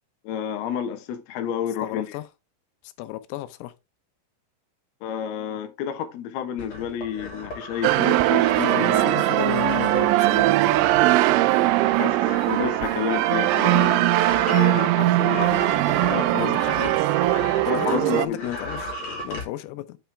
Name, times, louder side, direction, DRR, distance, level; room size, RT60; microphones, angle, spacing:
voice 1, 0.2-2.1 5.0-9.2 12.0-12.2 12.5-16.5 16.8-17.0 17.7-18.6, left 9 dB, 70° left, 2.7 m, -30 dB
voice 2, 1.8-2.3 2.8-3.7 8.6-10.6 16.3-17.2 17.8-18.9 19.2-20.0, left 15 dB, 90° left, 3.5 m, -34 dB
sound 1, 6.6-18.0 18.3-19.5, left 1 dB, 40° left, 3.1 m, -37 dB
sound 2, 7.8-18.3, right 15 dB, 85° right, 3.0 m, -20 dB
8.6 x 5.7 x 3.4 m
omnidirectional pair, 5.9 m